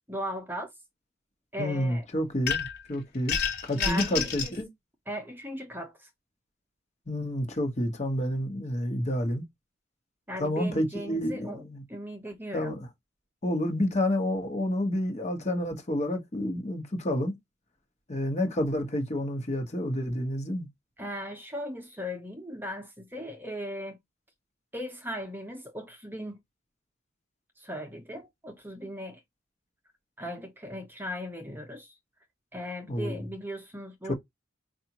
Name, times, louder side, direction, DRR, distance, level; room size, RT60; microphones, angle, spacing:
voice 1, 0.1-0.7 1.5-2.1 3.7-4.5 5.1-6.1 10.3-11.6 11.9-12.8 21.0-24.0 24.7-26.4 27.6-29.2 30.2-31.9 32.5-34.1, equal, 10° right, 0.9 m, -37 dB
voice 2, 1.6-4.7 7.1-9.4 10.4-11.8 12.5-12.9 13.4-17.3 18.1-20.7 32.9-33.2 34.0-34.1, left 1 dB, 35° left, 1.2 m, -29 dB
sound 1, 2.5-2.9 3.3-4.6, left 6 dB, 55° left, 1.3 m, -29 dB
4.9 x 2.5 x 2.9 m
head